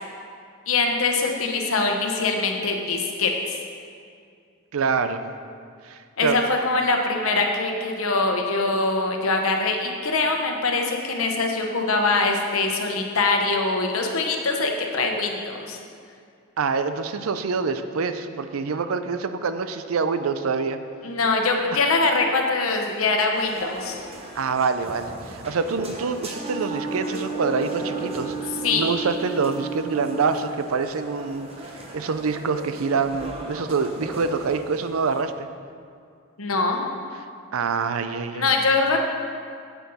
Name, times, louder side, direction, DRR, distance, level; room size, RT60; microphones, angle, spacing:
voice 1, 0.7-3.6 6.2-15.8 21.0-24.0 28.6-28.8 36.4-36.8 38.3-39.0, left 3 dB, 85° left, 2 dB, 1.0 m, -23 dB
voice 2, 4.7-5.2 5.8-6.4 16.6-20.8 21.7-21.8 24.4-31.5 31.9-35.5 37.5-38.4, right 5 dB, 85° right, 10 dB, 0.5 m, -26 dB
sound 1, 23.3-35.2, right 1 dB, 30° right, 1.0 m, -38 dB
Wind instrument woodwind instrument, 26.3-30.5, right 5 dB, 35° left, 1.7 m, -33 dB
8.2 x 7.5 x 4.2 m, 2.3 s
head